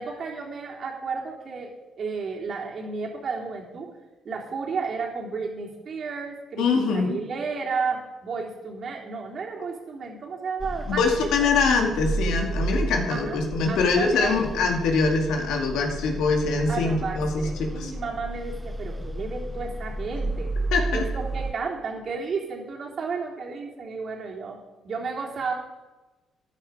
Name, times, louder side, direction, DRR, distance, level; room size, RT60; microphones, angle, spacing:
voice 1, 0.0-3.9 4.3-11.5 13.1-13.4 13.7-14.4 16.7-20.5 20.9-24.6 24.8-25.5, right 4 dB, 55° right, -1 dB, 3.4 m, -32 dB
voice 2, 6.6-7.2 10.9-17.9 20.7-21.0, left 4 dB, 85° left, 3 dB, 2.2 m, -23 dB
sound 1, 10.6-21.5, right 2 dB, 10° right, 0.6 m, -32 dB
14.0 x 10.5 x 4.9 m, 1.1 s
cardioid pair, 90°, 0 cm